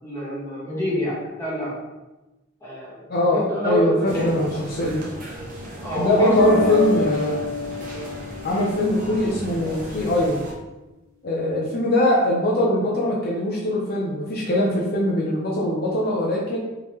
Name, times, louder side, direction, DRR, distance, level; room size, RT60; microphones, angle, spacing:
voice 1, 0.0-1.8 2.6-4.4 5.8-6.9, left 1 dB, 15° left, -7 dB, 1.2 m, -27 dB
voice 2, 3.1-5.0 6.0-7.4 8.4-10.4 11.2-16.6, left 1 dB, 50° left, -3 dB, 0.5 m, -21 dB
sound 1, 4.1-10.5, equal, 40° right, 0.7 m, -36 dB
sound 2, 6.4-9.2, left 3 dB, 70° right, 1.0 m, -29 dB
3.7 x 3.0 x 3.0 m, 1.1 s
head